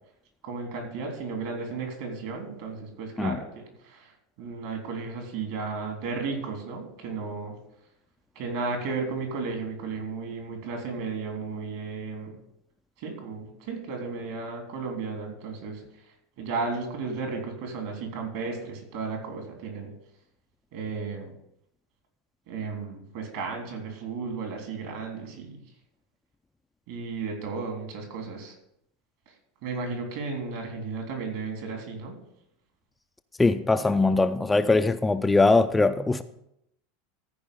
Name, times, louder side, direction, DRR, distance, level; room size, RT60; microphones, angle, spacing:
voice 1, 0.4-4.1 4.4-7.5 8.3-12.3 13.0-15.8 16.4-19.9 20.7-21.3 22.5-25.6 26.9-28.5 29.6-32.1, right 4 dB, 55° right, 3.3 m, -34 dB
voice 2, 33.4-36.2, left 3 dB, 10° left, 0.5 m, -21 dB
14.5 x 5.0 x 7.0 m
figure-of-eight pair, 80°, 0 cm